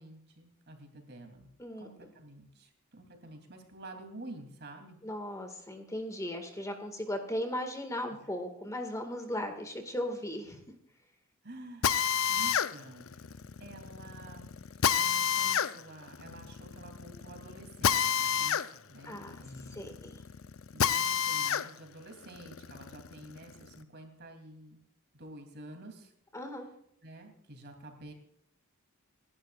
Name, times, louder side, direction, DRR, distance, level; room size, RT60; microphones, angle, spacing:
voice 1, 0.0-1.5 1.8-5.0 11.4-14.5 14.9-18.6 18.9-19.8 20.7-24.8 25.1-26.1 27.0-28.1, right 1 dB, 50° right, 4 dB, 3.1 m, -49 dB
voice 2, 1.6-2.1 5.0-10.6 19.0-19.4 19.7-20.2 26.3-26.7, left 1 dB, 15° left, 5 dB, 1.9 m, -37 dB
Drill, 11.8-21.7 22.1-23.7, left 8 dB, 70° left, 0.6 m, -30 dB
27.5 x 11.5 x 2.5 m, 0.73 s
head